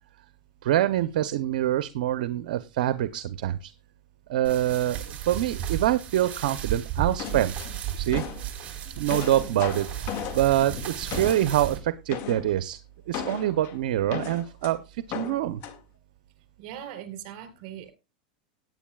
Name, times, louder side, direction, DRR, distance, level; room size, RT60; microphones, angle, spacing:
voice 1, 0.6-3.7 4.3-7.5 8.0-8.2 9.0-12.8 13.1-15.6, right 13 dB, 75° right, 12 dB, 0.7 m, -25 dB
sound 1, 4.4-11.8, right 9 dB, 35° right, 3.9 m, -34 dB
sound 2, 7.2-8.5 8.9-11.7 12.1-12.5 13.1-14.7 15.1-15.8, left 8 dB, 50° left, 1.9 m, -36 dB
voice 2, 16.6-17.9, right 10 dB, 55° right, 7 dB, 3.9 m, -40 dB
18.0 x 9.1 x 2.3 m, 0.26 s
supercardioid pair, 125°, 5 cm